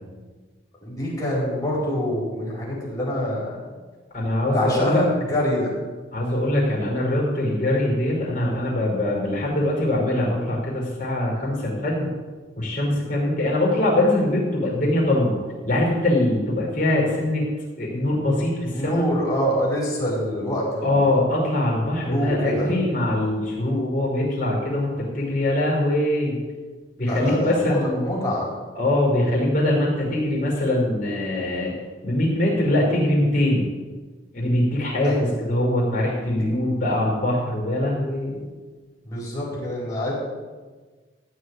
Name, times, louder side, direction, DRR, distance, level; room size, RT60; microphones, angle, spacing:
voice 1, 0.8-3.6 4.5-5.7 18.7-20.9 22.0-22.7 25.2-25.3 27.1-28.5 35.0-35.1 39.0-40.1, equal, 20° left, -5 dB, 4.4 m, -25 dB
voice 2, 4.1-5.0 6.1-12.1 12.6-17.4 17.8-19.1 20.8-26.4 27.0-28.1 28.7-31.7 32.0-33.7 34.3-38.4, left 1 dB, 45° left, -4 dB, 5.2 m, -22 dB
15.0 x 5.1 x 9.5 m, 1.4 s
head